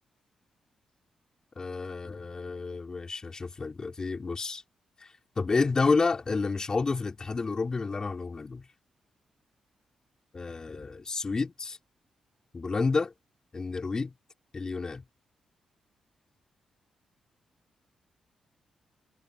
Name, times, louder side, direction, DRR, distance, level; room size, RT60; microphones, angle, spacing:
voice 1, 1.6-4.6 5.0-5.1 5.4-8.6 10.3-11.8 12.5-13.1 13.5-14.1 14.5-15.0, left 4 dB, 35° left, 5.0 m, -30 dB
cardioid pair, 80°, 2 cm